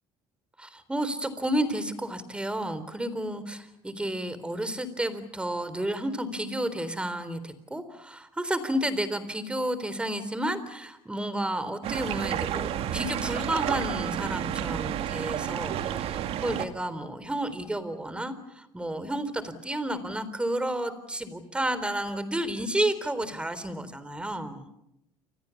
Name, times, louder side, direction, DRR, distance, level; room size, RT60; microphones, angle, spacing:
voice 1, 0.6-24.7, right 1 dB, 10° right, 13 dB, 3.8 m, -31 dB
sound 1, 11.8-16.6, right 10 dB, 60° right, 2.1 m, -31 dB
30.0 x 24.5 x 7.2 m, 0.85 s
cardioid pair, 110°, 11 cm